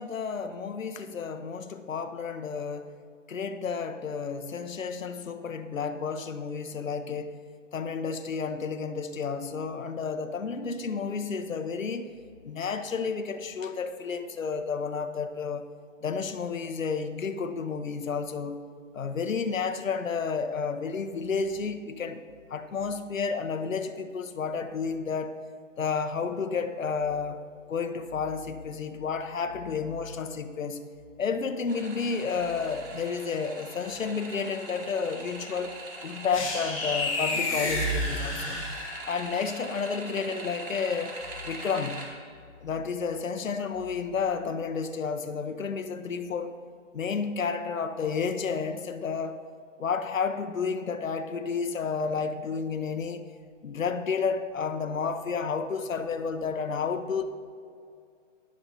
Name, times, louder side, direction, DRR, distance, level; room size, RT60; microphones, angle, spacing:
voice 1, 0.0-2.9 3.3-7.4 7.7-12.1 12.4-15.7 16.0-18.6 18.9-22.2 22.5-25.4 25.8-27.4 27.7-30.8 31.2-35.8 36.0-38.6 39.1-41.2 41.4-42.0 42.6-46.6 46.9-49.4 49.8-53.3 53.6-57.2, left 5 dB, 85° left, 8 dB, 1.1 m, -31 dB
sound 1, 31.7-42.1, right 2 dB, 45° right, 2.6 m, -42 dB
sound 2, 36.3-39.2, left 1 dB, 25° left, 2.1 m, -30 dB
21.5 x 7.6 x 2.8 m, 2.3 s
hypercardioid pair, 175°, 38 cm